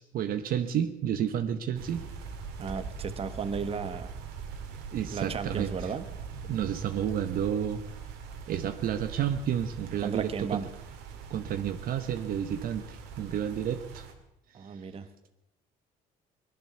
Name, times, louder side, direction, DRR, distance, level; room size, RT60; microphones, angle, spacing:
voice 1, 0.0-2.1 4.9-5.9 6.5-7.8 8.5-10.6 11.3-14.0, right 9 dB, 60° right, 8 dB, 1.0 m, -31 dB
sound 1, 1.7-14.1, right 5 dB, 85° right, 2.3 m, -42 dB
voice 2, 2.6-4.1 5.1-6.1 10.0-10.7 14.5-15.1, right 6 dB, 35° right, 11 dB, 1.2 m, -34 dB
18.0 x 11.5 x 6.9 m, 0.90 s
cardioid pair, 110°, 17 cm